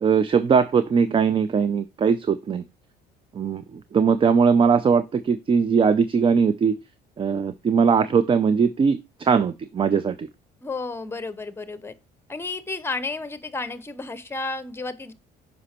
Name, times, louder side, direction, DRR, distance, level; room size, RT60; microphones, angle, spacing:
voice 1, 0.0-2.6 3.3-6.7 7.2-10.3, right 6 dB, 30° right, 0.5 m, -20 dB
voice 2, 10.6-11.9 12.3-15.1, left 3 dB, 15° left, 0.8 m, -32 dB
6.2 x 5.2 x 4.3 m
cardioid pair, 110°, 17 cm